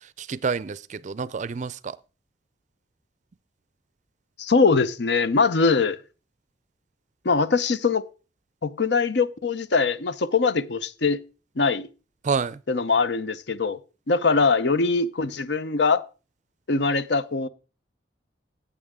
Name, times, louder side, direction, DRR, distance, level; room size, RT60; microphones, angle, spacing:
voice 1, 0.2-2.0 12.2-12.6, right 5 dB, 40° right, 0.4 m, -28 dB
voice 2, 4.4-6.0 7.2-8.0 8.6-11.2 11.6-11.9 12.7-13.8 14.1-16.0 16.7-17.5, left 4 dB, 65° left, 0.7 m, -22 dB
14.0 x 8.5 x 3.6 m
head